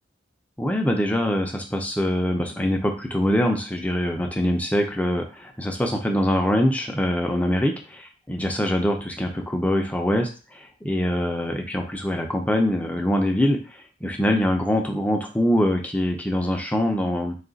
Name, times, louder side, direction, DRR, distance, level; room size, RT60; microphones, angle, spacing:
voice 1, 0.6-7.7 8.3-17.4, equal, 5° left, 3 dB, 0.4 m, -23 dB
3.5 x 2.4 x 3.9 m, 0.36 s
head